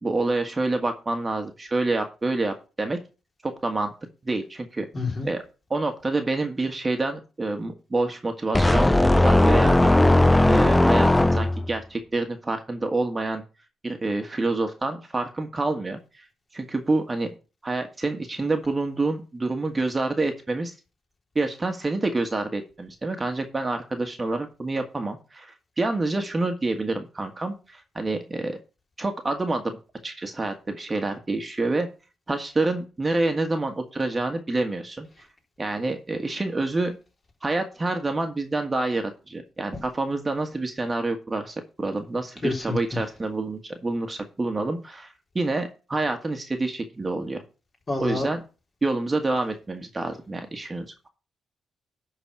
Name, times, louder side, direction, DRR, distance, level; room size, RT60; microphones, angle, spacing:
voice 1, 0.0-3.0 3.4-3.9 4.2-4.9 5.2-5.4 5.7-9.9 10.5-13.4 13.8-16.2 16.5-17.3 17.6-20.7 21.3-28.6 29.0-29.6 30.0-31.9 32.3-35.1 35.6-37.0 37.4-47.4 48.0-48.4 48.8-51.1, right 2 dB, 25° right, 1.5 m, -27 dB
voice 2, 4.9-5.3 42.4-43.0 47.9-48.3, left 3 dB, 35° left, 3.8 m, -28 dB
sound 1, 8.5-11.7, left 1 dB, 10° left, 0.5 m, -17 dB
11.0 x 4.1 x 6.1 m
cardioid pair, 75°, 0 cm